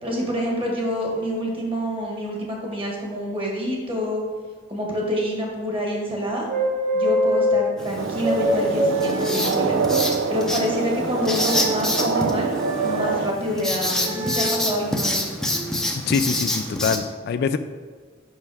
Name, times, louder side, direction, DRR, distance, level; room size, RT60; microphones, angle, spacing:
voice 1, 0.0-4.2 4.7-6.5 6.9-9.8 10.3-12.5 12.8-15.3, equal, 30° right, -1 dB, 1.5 m, -27 dB
sound 1, 6.5-7.6 8.1-9.8 11.4-12.0 12.5-13.1 14.0-14.6 15.4-15.8, equal, 50° right, 2.0 m, -24 dB
Writing, 7.8-17.0, left 1 dB, 5° left, 0.6 m, -28 dB
sound 2, 8.0-13.3, right 5 dB, 85° right, 0.4 m, -25 dB
voice 2, 16.1-17.6, left 6 dB, 55° left, 11 dB, 0.3 m, -24 dB
5.5 x 5.5 x 4.7 m, 1.5 s
head